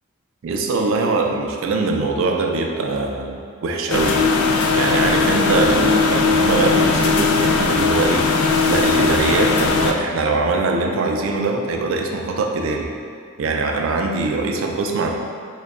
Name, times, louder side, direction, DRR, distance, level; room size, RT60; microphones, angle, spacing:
voice 1, 0.4-4.2 4.7-8.3 8.7-12.9 13.4-15.1, right 3 dB, 65° right, 2 dB, 0.3 m, -22 dB
sound 1, 3.9-9.9, left 4 dB, 80° left, 0.3 m, -18 dB
4.8 x 2.2 x 2.4 m, 2.2 s
head